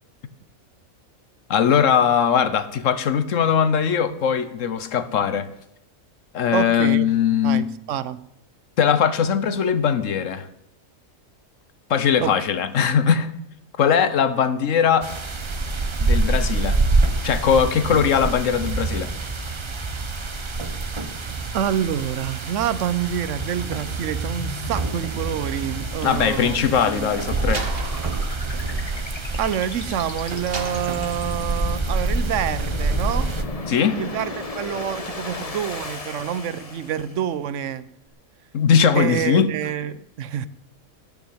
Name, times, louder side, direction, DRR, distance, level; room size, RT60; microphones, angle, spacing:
voice 1, 1.5-5.5 6.3-7.6 8.8-10.5 11.9-13.3 13.8-15.1 16.0-16.8 17.2-19.1 26.0-27.6 33.7-34.0 38.5-39.5, left 7 dB, 70° left, 1.2 m, -20 dB
voice 2, 6.5-7.1 7.4-8.2 12.2-12.3 21.5-27.6 29.4-33.3 34.0-37.8 38.9-40.5, right 9 dB, 65° right, 1.0 m, -27 dB
sound 1, 15.0-33.4, right 3 dB, 25° right, 0.7 m, -26 dB
sound 2, 23.9-37.3, left 2 dB, 30° left, 1.1 m, -35 dB
Slam, 27.5-29.9 30.5-31.7, right 3 dB, 45° right, 1.5 m, -36 dB
12.0 x 7.3 x 9.4 m
omnidirectional pair, 1.4 m